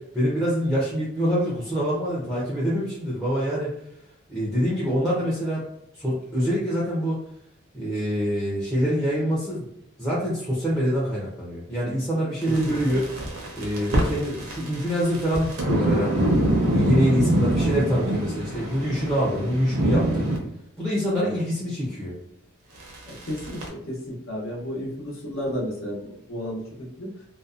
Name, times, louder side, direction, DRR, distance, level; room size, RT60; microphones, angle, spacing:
voice 1, 0.1-3.7 4.3-5.6 6.0-7.2 7.7-9.7 10.0-13.1 13.5-16.3 16.7-20.3 20.8-22.2, equal, ahead, -7 dB, 0.5 m, -25 dB
voice 2, 12.4-13.0 17.4-17.5 21.2-21.4 23.1-27.1, equal, 70° left, -3 dB, 0.8 m, -33 dB
sound 1, 12.4-20.4 22.8-23.7, right 1 dB, 80° right, 0.7 m, -25 dB
2.6 x 2.1 x 2.4 m, 0.75 s
head